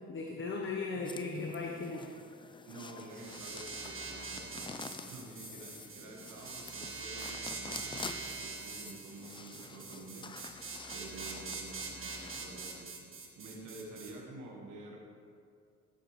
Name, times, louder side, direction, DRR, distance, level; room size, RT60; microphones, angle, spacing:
voice 1, 0.0-2.1, left 3 dB, 40° left, 1 dB, 0.9 m, -37 dB
sound 1, 1.0-12.8, left 4 dB, 15° left, 0.4 m, -48 dB
voice 2, 2.6-10.3 10.9-15.0, right 2 dB, 80° right, -1 dB, 1.6 m, -49 dB
sound 2, 3.1-14.1, right 4 dB, 45° right, 1.6 m, -44 dB
12.0 x 6.9 x 3.2 m, 2.3 s
cardioid pair, 90°, 30 cm